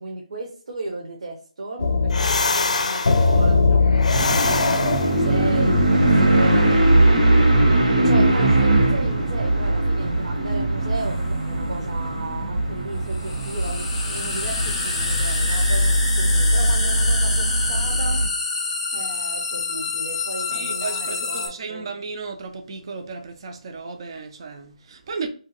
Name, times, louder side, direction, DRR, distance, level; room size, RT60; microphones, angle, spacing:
voice 1, 0.0-6.8 8.0-18.2 18.9-21.9, right 2 dB, 65° right, 0.8 m, -34 dB
sound 1, 1.8-5.3, left 4 dB, 65° left, 0.5 m, -19 dB
sound 2, 4.1-18.3, right 1 dB, 85° right, 1.3 m, -20 dB
sound 3, 11.0-11.1 13.1-21.5, left 3 dB, 15° left, 0.8 m, -27 dB
voice 2, 20.5-25.3, right 4 dB, 40° right, 0.4 m, -34 dB
2.6 x 2.4 x 3.9 m
hypercardioid pair, 165°, 4 cm